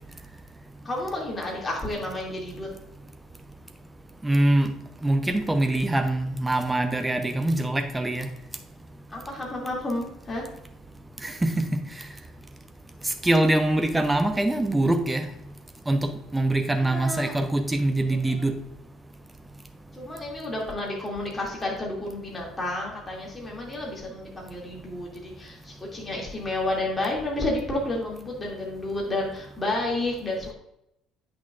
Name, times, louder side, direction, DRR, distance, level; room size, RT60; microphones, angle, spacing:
voice 1, 0.8-2.7 9.1-10.5 16.8-17.3 18.1-18.4 19.9-30.5, left 2 dB, 20° left, -2 dB, 2.5 m, -31 dB
voice 2, 4.2-4.7 5.0-8.3 11.2-11.8 13.0-15.3 15.9-18.5, right 1 dB, 10° right, 7 dB, 0.8 m, -24 dB
8.5 x 6.1 x 2.5 m, 0.80 s
figure-of-eight pair, 55°, 0 cm